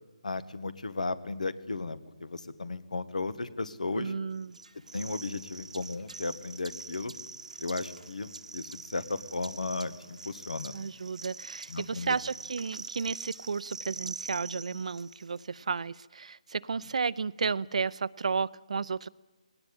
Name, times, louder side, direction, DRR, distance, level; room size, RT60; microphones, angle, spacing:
voice 1, 0.2-4.1 4.9-7.1 7.6-10.8 11.7-12.2, left 3 dB, 85° left, 14 dB, 1.6 m, -35 dB
voice 2, 3.9-4.6 10.7-19.1, right 5 dB, 65° right, 19 dB, 0.6 m, -33 dB
sound 1, 4.5-15.4, right 3 dB, 90° right, 1.4 m, -44 dB
20.0 x 17.5 x 8.8 m, 1.2 s
figure-of-eight pair, 155°, 4 cm